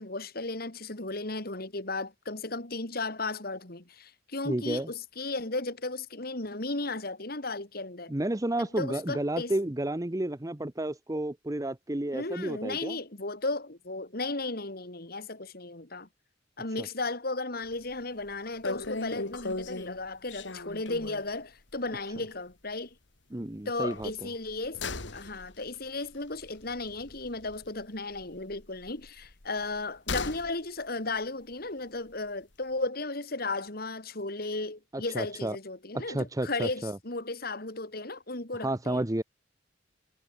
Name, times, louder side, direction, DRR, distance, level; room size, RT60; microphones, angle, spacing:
voice 1, 0.0-8.1 8.6-9.5 12.1-16.1 16.6-22.9 23.6-24.8 25.1-39.0, left 2 dB, 55° left, 3.1 m, -35 dB
voice 2, 4.5-4.9 8.1-13.0 23.3-24.1 34.9-35.6 35.9-37.0 38.6-39.2, right 1 dB, 20° right, 0.9 m, -31 dB
sound 1, 17.7-18.0 18.3-18.4 18.6-21.3 21.7-21.9 22.2-22.3 23.9-27.8 28.1-30.5 30.8-30.9, left 3 dB, 70° left, 2.4 m, -38 dB
head